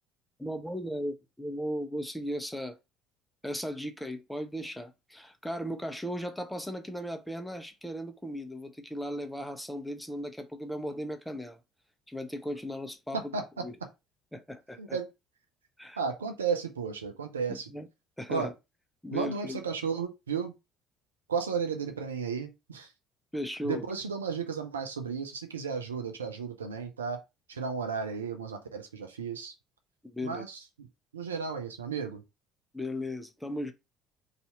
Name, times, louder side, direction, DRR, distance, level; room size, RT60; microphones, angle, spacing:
voice 1, 0.4-2.8 3.4-11.6 12.1-13.3 13.6-13.7 14.3-15.0 15.8-16.0 17.7-17.9 18.2-18.5 19.0-19.6 23.3-23.8 30.0-30.4 32.7-33.7, equal, 5° left, 0.7 m, -36 dB
voice 2, 13.1-13.7 14.8-15.1 16.0-17.7 18.3-18.5 19.1-20.5 21.3-22.9 23.6-27.2 27.5-29.5 30.2-30.9 31.1-32.2, right 5 dB, 85° right, 0.4 m, -34 dB
2.7 x 2.4 x 4.1 m
figure-of-eight pair, 55°, 0 cm